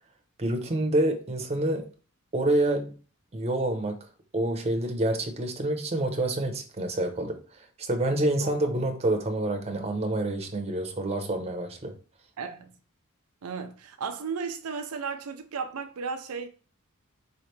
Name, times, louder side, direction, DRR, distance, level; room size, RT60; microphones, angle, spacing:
voice 1, 0.4-1.9 2.3-2.9 3.3-4.0 4.3-7.4 7.9-11.9, right 1 dB, 30° right, 0.8 m, -27 dB
voice 2, 12.4-12.7 13.4-16.5, right 5 dB, 80° right, 0.5 m, -34 dB
4.8 x 3.2 x 3.1 m
head